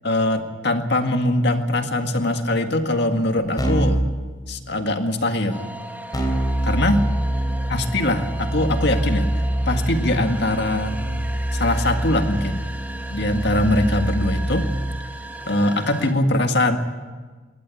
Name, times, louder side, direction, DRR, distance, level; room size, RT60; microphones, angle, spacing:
voice 1, 0.0-4.0 4.5-5.7 6.6-7.0 7.7-10.9 11.5-12.6 13.1-14.7 15.5-16.8, left 1 dB, 55° left, 6 dB, 1.9 m, -22 dB
Keyboard (musical), 3.6-4.1 6.1-15.0, right 1 dB, 20° left, 3.2 m, -25 dB
sound 1, 5.5-16.1, right 1 dB, 10° right, 1.4 m, -37 dB
22.0 x 18.5 x 8.6 m, 1.4 s
head